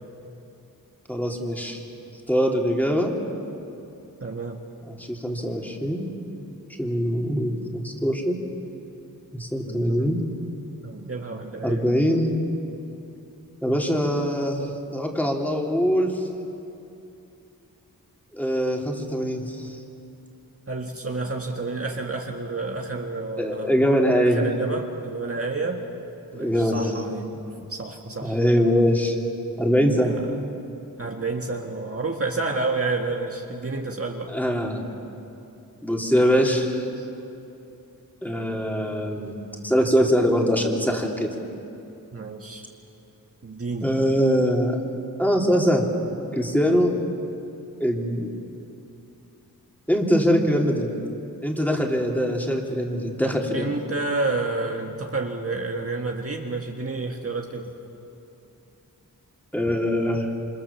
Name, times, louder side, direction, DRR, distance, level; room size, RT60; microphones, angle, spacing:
voice 1, 1.1-1.8 2.3-3.1 4.9-6.1 6.8-8.4 9.3-10.2 11.6-12.4 13.6-16.2 18.3-19.8 23.4-24.5 26.3-27.0 28.2-29.2 29.6-30.1 34.3-34.8 35.8-36.8 38.2-39.3 39.6-41.3 43.8-44.8 45.2-45.9 46.3-47.0 47.8-48.3 49.9-50.9 51.4-53.7 59.5-60.3, equal, 5° left, -1 dB, 3.4 m, -22 dB
voice 2, 4.2-4.6 9.6-10.1 10.8-11.9 14.3-14.4 20.7-23.8 24.3-25.8 26.3-27.3 27.6-28.4 30.0-30.5 31.0-34.3 37.0-37.1 42.1-42.7 43.4-43.9 46.9-47.0 53.5-57.7 59.6-59.7, right 3 dB, 40° right, 1 dB, 1.9 m, -30 dB
28.0 x 25.5 x 7.2 m, 2.8 s
wide cardioid pair, 75°, 35 cm